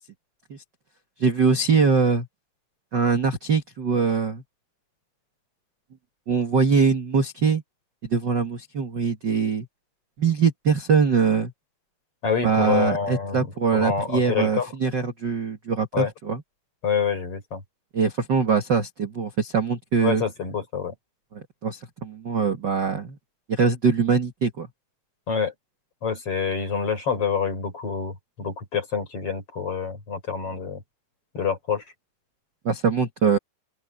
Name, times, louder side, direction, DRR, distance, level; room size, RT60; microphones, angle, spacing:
voice 1, 1.2-2.3 2.9-4.4 6.3-7.6 8.1-9.7 10.2-11.5 12.4-16.4 17.9-20.2 21.3-23.2 23.5-24.7 32.7-33.4, right 5 dB, 40° right, 1.7 m, -22 dB
voice 2, 12.2-14.7 15.9-16.1 16.8-17.6 20.0-20.9 25.3-25.5 26.0-30.8 31.3-31.8, left 6 dB, 40° left, 5.1 m, -27 dB
open air
omnidirectional pair, 4.4 m